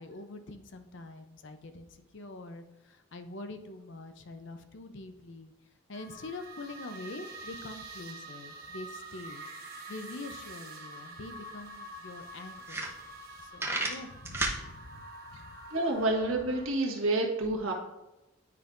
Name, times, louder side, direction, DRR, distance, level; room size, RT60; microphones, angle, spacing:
voice 1, 0.0-5.5 5.9-9.4 9.9-12.9 13.5-15.5, left 2 dB, 60° left, 8 dB, 0.6 m, -45 dB
sound 1, 5.9-16.7, right 2 dB, 45° right, 1.1 m, -46 dB
sound 2, 11.6-11.7 12.2-12.3 12.6-13.3 13.6-14.6, right 2 dB, 10° right, 0.8 m, -32 dB
voice 2, 15.7-17.7, right 2 dB, 80° right, 0 dB, 1.4 m, -28 dB
9.3 x 5.3 x 2.5 m, 0.98 s
head